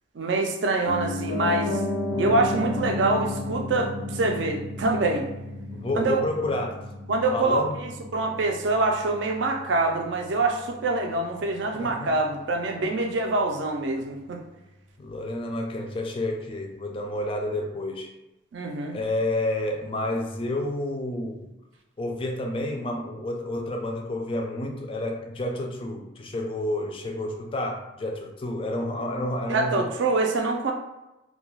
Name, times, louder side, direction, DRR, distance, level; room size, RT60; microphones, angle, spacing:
voice 1, 0.1-1.8 2.2-5.3 6.0-6.2 7.1-14.4 18.5-19.0 29.5-30.7, right 2 dB, 65° right, 2 dB, 0.4 m, -25 dB
Piano, 0.9-10.9 11.2-11.3, left 2 dB, 90° left, 0.5 m, -33 dB
voice 2, 5.7-6.9 7.3-7.8 11.7-12.2 15.0-18.1 18.9-21.5 22.0-29.9, left 1 dB, 30° left, 2 dB, 0.3 m, -30 dB
2.3 x 2.2 x 3.1 m, 0.99 s
head